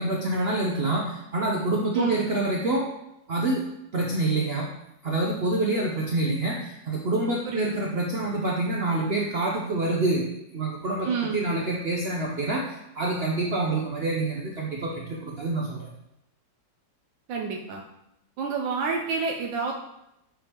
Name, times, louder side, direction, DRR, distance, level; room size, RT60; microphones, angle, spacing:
voice 1, 0.0-2.9 3.3-3.6 3.9-4.7 5.0-10.2 10.5-11.1 11.3-15.9, right 2 dB, 65° right, -1 dB, 0.6 m, -27 dB
voice 2, 1.9-2.3 7.5-7.9 11.0-11.4 17.3-17.8 18.4-19.7, right 5 dB, 85° right, 0 dB, 1.4 m, -28 dB
7.4 x 5.2 x 2.9 m, 0.84 s
omnidirectional pair, 2.0 m